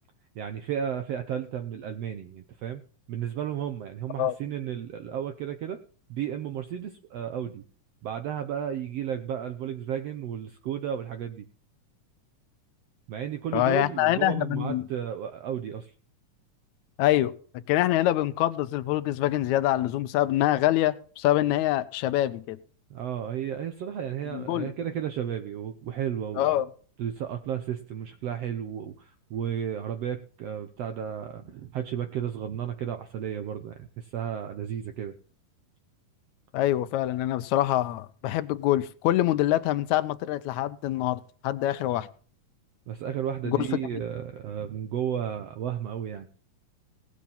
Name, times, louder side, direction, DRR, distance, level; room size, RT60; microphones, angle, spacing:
voice 1, 0.3-2.8 3.1-5.8 6.1-7.6 8.0-11.4 13.1-15.9 22.9-26.6 27.0-35.1 42.9-46.3, right 9 dB, 75° right, 1.4 m, -33 dB
voice 2, 13.5-14.9 17.0-17.3 17.7-22.6 24.3-24.7 26.4-26.7 36.5-42.1 43.4-43.7, left 14 dB, 75° left, 1.7 m, -25 dB
18.0 x 7.4 x 5.5 m
omnidirectional pair, 4.0 m